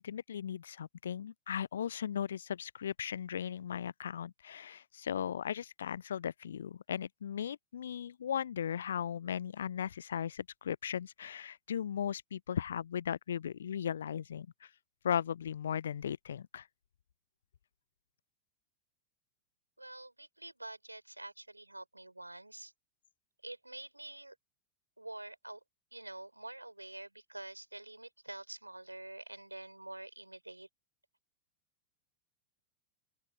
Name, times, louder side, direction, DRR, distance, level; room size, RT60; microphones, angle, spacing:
voice 1, 0.0-14.7 15.0-16.7, left 8 dB, 65° left, 0.4 m, -37 dB
voice 2, 19.8-22.7 23.4-24.4 25.0-25.6 25.9-30.7, right 1 dB, 85° right, 5.2 m, -47 dB
open air
figure-of-eight pair, 90°, 0 cm